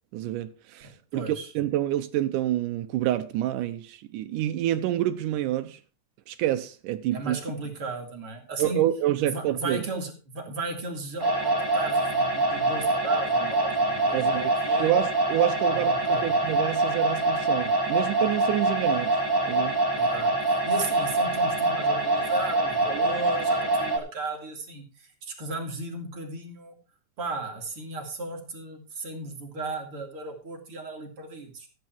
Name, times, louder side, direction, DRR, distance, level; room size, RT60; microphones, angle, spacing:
voice 1, 0.1-5.8 6.3-7.4 8.6-9.8 14.1-14.5 14.8-19.2 19.5-19.8, right 13 dB, 85° right, 2.3 m, -28 dB
voice 2, 1.1-1.5 7.1-8.8 9.3-14.9 15.7-16.3 19.9-26.8 27.2-31.7, right 3 dB, 45° right, 3.0 m, -35 dB
sound 1, 11.2-24.0, right 2 dB, 10° right, 1.8 m, -25 dB
14.5 x 9.3 x 4.5 m
omnidirectional pair, 3.7 m